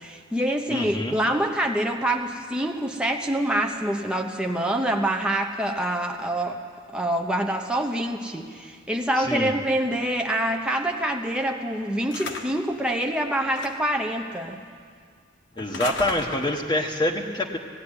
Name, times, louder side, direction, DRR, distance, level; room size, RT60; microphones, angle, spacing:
voice 1, 0.0-6.6 6.9-14.6, right 1 dB, 5° right, 2 dB, 0.9 m, -26 dB
voice 2, 0.7-1.2 9.2-9.5 15.6-17.6, left 1 dB, 20° left, 0 dB, 1.1 m, -26 dB
sound 1, 12.1-12.7 13.5-14.0 15.6-16.7, left 4 dB, 65° left, 1.4 m, -35 dB
18.0 x 16.0 x 10.0 m, 2.1 s
head